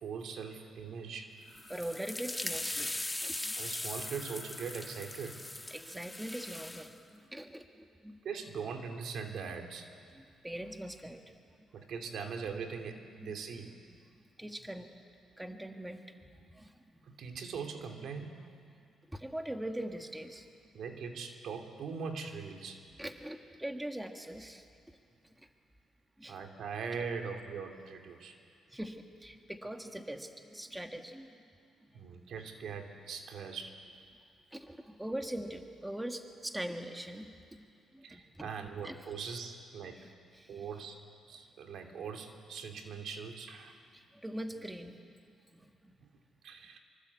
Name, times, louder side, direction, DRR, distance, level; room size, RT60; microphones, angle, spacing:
voice 1, 0.0-1.3 3.5-5.5 8.2-9.9 11.7-13.7 17.1-18.4 20.7-22.8 26.3-28.4 31.9-33.8 38.0-40.1 40.5-41.0 41.3-43.8 46.0-46.1 46.4-46.8, right 5 dB, 65° right, 4 dB, 2.8 m, -41 dB
sound 1, 1.5-6.9, left 1 dB, 10° left, 1.2 m, -40 dB
voice 2, 1.7-3.5 5.7-8.2 10.1-11.2 13.2-13.3 14.4-14.9 15.4-16.0 16.4-16.7 19.1-20.5 23.0-24.7 25.2-25.5 26.2-26.4 28.7-31.3 34.5-37.6 37.9-38.5 38.8-39.0 40.0-40.1 40.3-40.7 43.9-45.0 45.5-45.7, right 1 dB, 10° right, 5 dB, 1.6 m, -42 dB
24.5 x 24.0 x 8.4 m, 2.4 s
cardioid pair, 90°, 0 cm